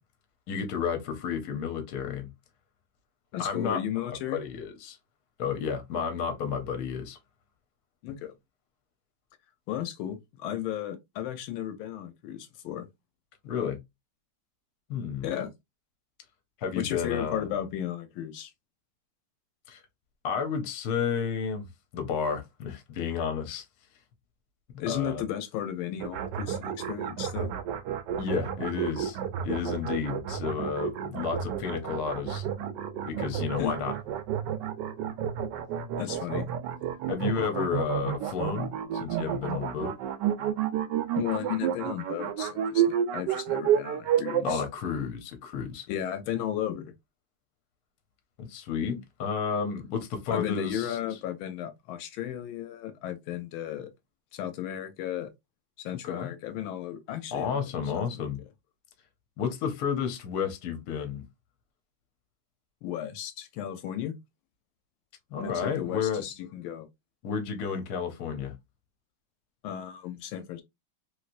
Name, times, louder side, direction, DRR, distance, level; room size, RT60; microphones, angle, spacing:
voice 1, 0.5-2.3 3.4-5.0 5.4-7.2 13.4-13.8 14.9-15.3 16.6-17.5 19.7-19.8 20.2-21.7 21.9-23.6 24.7-25.2 28.2-29.2 29.4-32.5 33.1-34.0 36.3-36.4 37.1-39.9 44.4-45.9 48.4-51.0 56.0-56.3 57.3-58.4 59.4-61.3 65.3-66.2 67.2-68.5, left 6 dB, 60° left, 1.1 m, -31 dB
voice 2, 3.3-4.4 8.0-8.4 9.7-12.9 15.2-15.5 16.8-18.5 24.8-27.5 33.6-33.7 36.0-36.5 41.1-44.6 45.9-46.9 50.3-53.9 54.3-55.3 55.8-57.6 57.9-58.2 62.8-64.2 65.4-66.9 69.6-70.6, left 10 dB, 85° left, 1.4 m, -34 dB
sound 1, 26.0-44.5, right 9 dB, 75° right, 1.0 m, -30 dB
3.2 x 3.0 x 2.5 m
omnidirectional pair, 2.2 m